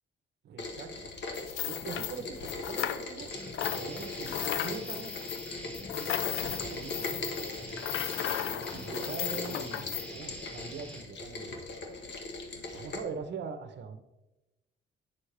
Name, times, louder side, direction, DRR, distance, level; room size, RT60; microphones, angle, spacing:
voice 1, 0.4-1.2 1.6-3.3 3.7-5.3 5.8-7.1 8.5-11.5 12.7-14.0, right 5 dB, 60° right, 9 dB, 0.8 m, -42 dB
Rain, 0.6-13.0, left 2 dB, 60° left, 1.3 m, -40 dB
sound 1, 1.3-3.3 3.5-10.1, left 11 dB, 85° left, 0.5 m, -35 dB
sound 2, 3.3-11.0, equal, 5° left, 1.4 m, -45 dB
9.4 x 6.5 x 3.3 m, 1.0 s
cardioid pair, 90°, 20 cm